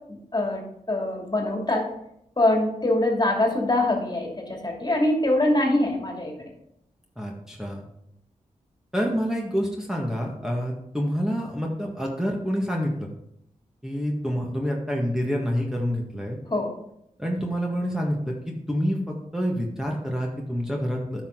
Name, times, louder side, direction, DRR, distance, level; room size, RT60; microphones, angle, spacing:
voice 1, 0.1-0.6 0.9-1.9 2.4-6.5 16.5-16.7, left 1 dB, 30° left, 1 dB, 2.6 m, -24 dB
voice 2, 7.2-7.8 8.9-13.1 13.8-16.4 17.2-21.3, equal, 5° right, -2 dB, 1.7 m, -27 dB
9.8 x 6.4 x 3.8 m, 0.78 s
cardioid pair, 45°, 14 cm